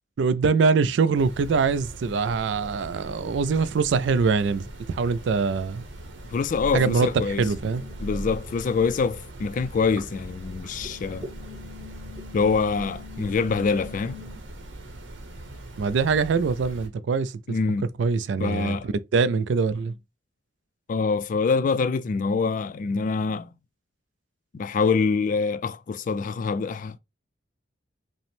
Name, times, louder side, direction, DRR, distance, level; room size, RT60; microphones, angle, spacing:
voice 1, 0.2-5.8 6.7-7.8 15.8-17.4 18.0-19.9, right 5 dB, 70° right, 0.4 m, -23 dB
sound 1, 1.1-16.9, right 1 dB, 90° right, 0.9 m, -41 dB
voice 2, 6.3-7.5 8.0-11.3 12.3-14.2 17.5-17.9 18.4-18.9 20.9-23.5 24.5-27.0, left 4 dB, 45° left, 0.3 m, -25 dB
sound 2, 6.6-8.9 9.2-14.4, left 1 dB, 25° right, 1.6 m, -41 dB
5.1 x 2.1 x 3.3 m
head